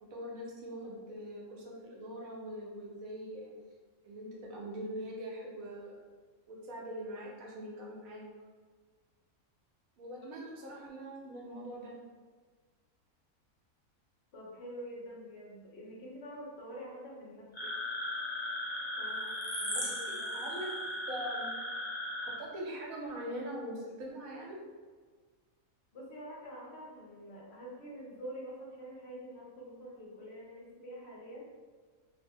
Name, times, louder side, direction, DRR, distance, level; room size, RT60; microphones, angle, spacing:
voice 1, 0.0-3.5 4.0-6.0 6.5-8.2 10.0-12.0 19.1-19.9 20.3-20.7 21.1-21.5 22.2-24.6, equal, 80° right, -3 dB, 1.1 m, -42 dB
voice 2, 14.3-17.7 19.0-19.3 19.6-20.4 25.9-31.5, equal, 55° left, -5 dB, 1.0 m, -46 dB
sound 1, 17.5-22.4, left 1 dB, 40° left, 0.4 m, -37 dB
2.8 x 2.1 x 3.5 m, 1.5 s
omnidirectional pair, 1.4 m